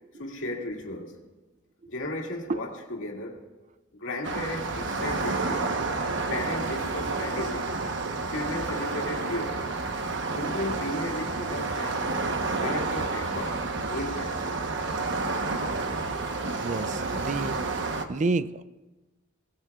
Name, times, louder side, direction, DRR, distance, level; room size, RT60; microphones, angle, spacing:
voice 1, 0.2-1.2 1.9-3.5 4.0-5.7 6.3-7.7 8.3-9.7 10.3-12.0 12.6-13.6 13.9-14.5, left 1 dB, 70° left, 2.3 m, -34 dB
sound 1, 4.2-18.0, right 3 dB, 65° right, 1.0 m, -30 dB
voice 2, 16.6-17.6 18.1-18.6, right 3 dB, 35° right, 0.4 m, -29 dB
23.0 x 16.5 x 2.4 m
head